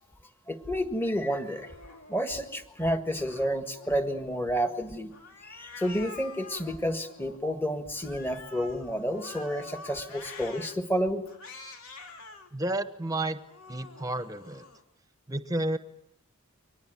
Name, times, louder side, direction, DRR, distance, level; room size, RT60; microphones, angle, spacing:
voice 1, 0.5-1.7 2.1-5.1 5.4-11.2, equal, 10° left, 7 dB, 1.6 m, -30 dB
Cat, 1.2-2.6 3.1-4.5 5.1-7.4 7.9-10.7 11.3-12.5 13.0-14.8, left 3 dB, 80° left, 3.0 m, -47 dB
voice 2, 12.5-13.4 13.7-14.7 15.3-15.8, right 1 dB, 15° right, 11 dB, 1.0 m, -31 dB
23.5 x 19.5 x 9.1 m, 0.78 s
head